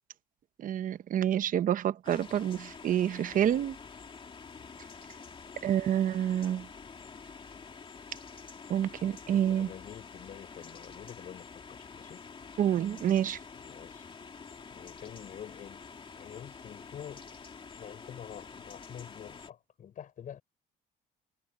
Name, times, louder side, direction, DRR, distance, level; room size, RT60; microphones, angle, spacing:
voice 1, 0.6-3.8 5.6-6.7 8.7-9.7 12.6-13.4, right 10 dB, 55° right, 0.9 m, -28 dB
sound 1, 2.0-19.5, left 5 dB, 30° left, 2.4 m, -48 dB
voice 2, 9.0-12.2 13.6-14.1 14.7-15.9 16.1-17.3 17.8-20.4, left 9 dB, 50° left, 5.0 m, -47 dB
cardioid pair, 110°, 17 cm